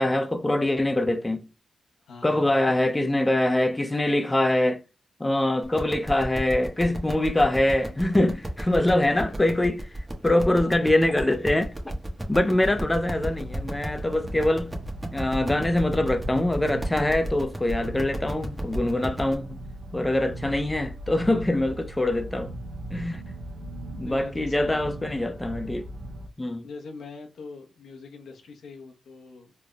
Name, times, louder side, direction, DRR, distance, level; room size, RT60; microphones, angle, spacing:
voice 1, 0.0-1.5 2.2-4.8 5.2-11.9 12.3-14.7 15.1-19.6 19.9-22.5 22.9-23.2 23.9-25.9 26.4-26.7, left 1 dB, 15° left, 0.4 m, -24 dB
voice 2, 2.0-2.6 10.5-11.0 12.4-12.8 24.0-25.0 26.6-29.5, left 4 dB, 85° left, 0.9 m, -43 dB
sound 1, 5.6-19.3, right 1 dB, 20° right, 1.2 m, -35 dB
sound 2, 12.6-26.3, right 1 dB, 65° right, 0.7 m, -39 dB
3.9 x 3.3 x 2.2 m
cardioid pair, 70°, 0 cm